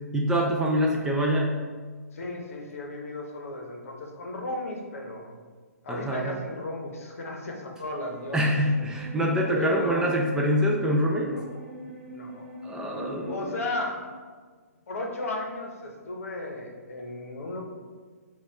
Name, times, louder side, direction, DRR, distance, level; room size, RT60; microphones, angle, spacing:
voice 1, 0.1-1.6 5.9-6.4 8.3-11.3 12.6-13.5, equal, 10° right, -2 dB, 0.3 m, -25 dB
voice 2, 2.1-5.3 5.8-8.4 9.5-10.1 11.3-11.5 12.1-12.5 13.3-14.2 14.9-17.6, left 2 dB, 60° left, 1 dB, 0.8 m, -34 dB
sound 1, 8.1-13.9, equal, 35° right, 1.1 m, -42 dB
4.1 x 2.3 x 4.6 m, 1.5 s
figure-of-eight pair, 125°, 9 cm